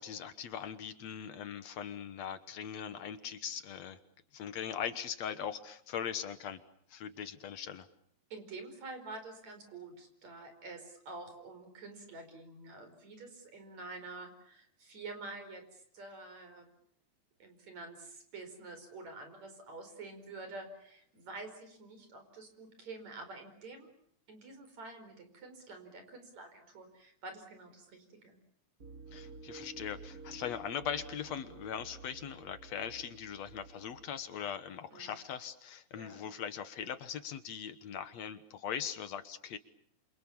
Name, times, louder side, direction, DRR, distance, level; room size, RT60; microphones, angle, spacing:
voice 1, 0.0-4.0 4.3-6.6 6.9-7.9 29.1-39.6, left 8 dB, 65° left, 12 dB, 2.3 m, -40 dB
voice 2, 8.3-16.7 17.4-23.9 24.3-28.4 34.9-35.2 36.0-36.3, right 3 dB, 65° right, 7 dB, 6.2 m, -48 dB
sound 1, 28.8-34.1, right 4 dB, 30° right, 2.7 m, -51 dB
28.0 x 27.5 x 7.1 m, 0.64 s
omnidirectional pair, 3.4 m